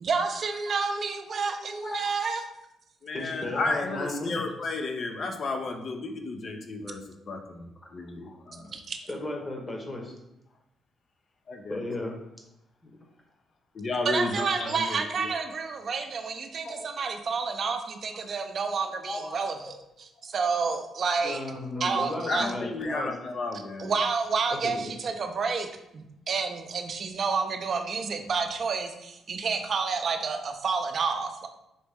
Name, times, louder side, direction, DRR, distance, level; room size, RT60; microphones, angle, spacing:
voice 1, 0.0-2.4 8.7-9.0 14.0-20.1 20.3-21.4 21.8-22.5 23.8-25.7 25.9-31.5, right 5 dB, 50° right, 5 dB, 0.5 m, -29 dB
voice 2, 0.7-1.0 1.3-2.1 3.1-4.4 9.1-10.1 11.7-12.2 12.8-12.9 16.6-16.9 18.8-19.4 19.6-19.7 21.2-23.1 24.6-24.9, left 1 dB, 25° left, 1 dB, 1.0 m, -35 dB
voice 3, 3.0-8.8 11.5-11.9 13.7-15.4 22.3-23.9, left 3 dB, 50° left, 5 dB, 0.5 m, -33 dB
4.1 x 3.0 x 3.5 m, 0.86 s
cardioid pair, 90°, 0 cm